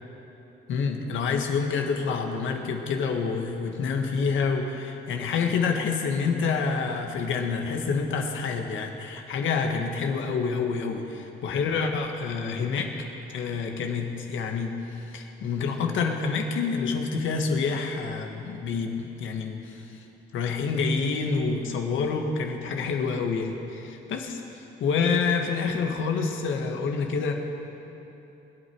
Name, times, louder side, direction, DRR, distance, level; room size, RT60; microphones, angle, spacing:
voice 1, 0.7-14.7 15.0-19.6 20.3-24.4 24.8-27.3, left 5 dB, 75° left, 3 dB, 1.7 m, -27 dB
25.0 x 8.7 x 4.7 m, 3.0 s
cardioid pair, 90°, 20 cm